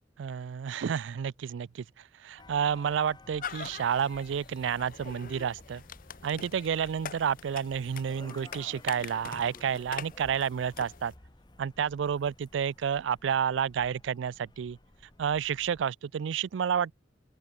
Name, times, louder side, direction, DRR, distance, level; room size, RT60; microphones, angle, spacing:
voice 1, 0.2-1.8 2.2-5.8 6.2-11.1 11.6-14.8 15.2-16.9, right 7 dB, 90° right, 0.4 m, -30 dB
sound 1, 2.4-15.8, left 2 dB, 25° left, 1.3 m, -53 dB
sound 2, 3.4-11.2, left 7 dB, 50° left, 0.7 m, -44 dB
open air
head